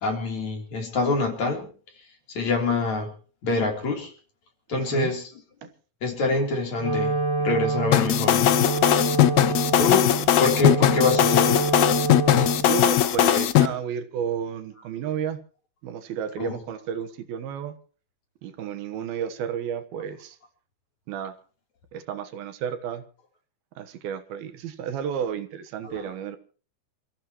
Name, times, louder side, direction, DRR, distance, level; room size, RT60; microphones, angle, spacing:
voice 1, 0.0-1.7 2.3-3.1 3.4-4.1 4.7-5.3 6.0-8.6 9.8-10.1 10.4-11.7 16.4-16.5 25.8-25.9, left 3 dB, 50° left, 2 dB, 4.6 m, -25 dB
voice 2, 4.7-5.1 5.6-5.7 10.2-10.3 12.6-15.4 15.8-17.8 18.4-20.4 21.1-21.3 21.9-23.0 23.8-26.4, right 8 dB, 80° right, 8 dB, 3.2 m, -32 dB
Wind instrument woodwind instrument, 6.7-12.8, right 3 dB, 20° right, 6.3 m, -27 dB
sound 1, 7.9-13.7, left 12 dB, 70° left, 1.8 m, -19 dB
28.0 x 15.5 x 3.1 m, 0.39 s
omnidirectional pair, 4.3 m